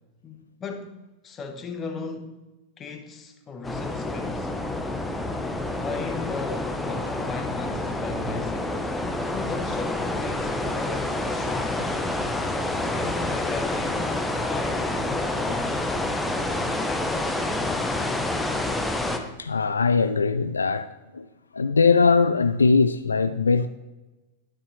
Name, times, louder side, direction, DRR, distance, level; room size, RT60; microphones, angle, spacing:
voice 1, 0.2-2.5 2.8-4.5 5.8-8.8 9.2-11.9 12.8-15.9 16.9-17.9, left 4 dB, 25° left, 1.2 m, -37 dB
sound 1, 3.6-19.2, left 2 dB, 5° left, 0.9 m, -28 dB
voice 2, 19.2-21.3 21.5-23.7, left 4 dB, 80° left, 0.3 m, -21 dB
11.0 x 9.8 x 3.2 m
figure-of-eight pair, 90°, 0 cm